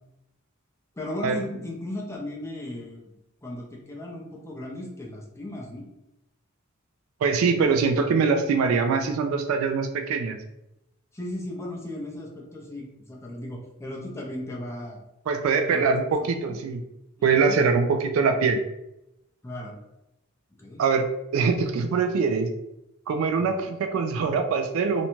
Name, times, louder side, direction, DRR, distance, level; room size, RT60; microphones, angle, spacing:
voice 1, 1.0-3.1 3.4-5.9 11.1-15.0 15.7-15.9 16.4-16.6 17.4-17.6 19.4-19.8 20.6-20.8 23.4-23.5, left 1 dB, 15° left, -2 dB, 0.5 m, -36 dB
voice 2, 7.2-10.4 15.3-16.8 17.2-18.6 20.8-22.5 23.1-25.1, right 5 dB, 75° right, 7 dB, 0.3 m, -23 dB
2.5 x 2.2 x 2.9 m, 0.88 s
head